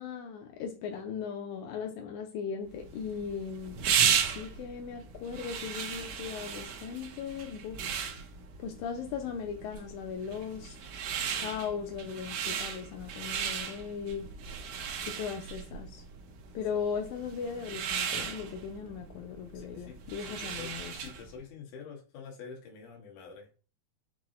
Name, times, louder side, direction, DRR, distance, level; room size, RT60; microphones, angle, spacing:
voice 1, 0.0-7.9 8.6-10.8 11.3-14.3 15.1-16.0 16.5-21.1, left 6 dB, 85° left, 1.7 m, -38 dB
sound 1, 2.8-21.3, right 7 dB, 80° right, 1.5 m, -35 dB
voice 2, 19.5-20.0 20.2-23.5, left 5 dB, 70° left, 2.4 m, -47 dB
5.9 x 2.0 x 3.7 m
omnidirectional pair, 4.0 m